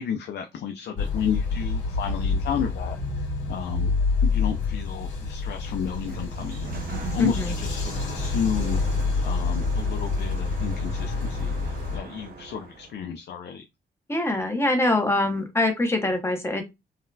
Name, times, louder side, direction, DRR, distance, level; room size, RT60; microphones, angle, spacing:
voice 1, 0.0-3.9 4.2-8.8 9.2-13.6, left 7 dB, 70° left, 0.4 m, -32 dB
sound 1, 1.0-12.0, left 4 dB, 85° left, 1.8 m, -27 dB
Sliding door, 5.6-13.0, right 4 dB, 55° right, 0.6 m, -39 dB
voice 2, 7.2-7.5 14.1-16.6, left 2 dB, 15° left, 0.7 m, -24 dB
3.9 x 2.1 x 2.6 m
wide cardioid pair, 155°, 19 cm